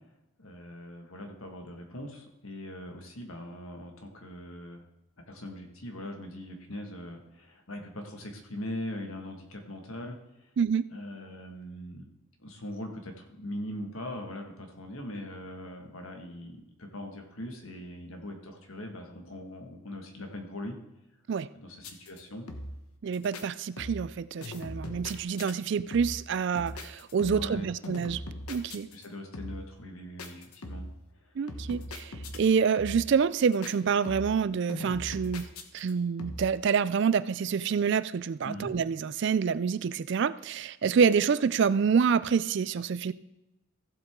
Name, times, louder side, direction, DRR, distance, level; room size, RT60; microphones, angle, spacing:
voice 1, 0.4-4.8 5.3-10.5 10.9-12.0 12.4-20.7 21.5-22.4 27.2-27.7 28.9-30.9 31.2-31.3 38.4-38.7, left 1 dB, 70° left, 3 dB, 1.7 m, -41 dB
voice 2, 10.6-10.9 21.3-21.5 23.0-28.2 28.5-28.9 31.4-35.5 35.7-43.1, right 6 dB, 55° right, 16 dB, 0.3 m, -27 dB
sound 1, 21.8-22.2 22.5-22.9 23.1-23.4 23.8-24.2 24.4-25.5 25.9-26.3 26.6-27.6 27.8-29.1 29.3-29.7 30.2-31.0 31.5-32.5 32.8-33.2 33.4-33.7 34.1-34.4 34.7-35.9 36.2-36.6, left 1 dB, 90° left, 1.1 m, -40 dB
15.0 x 7.7 x 3.7 m, 0.92 s
head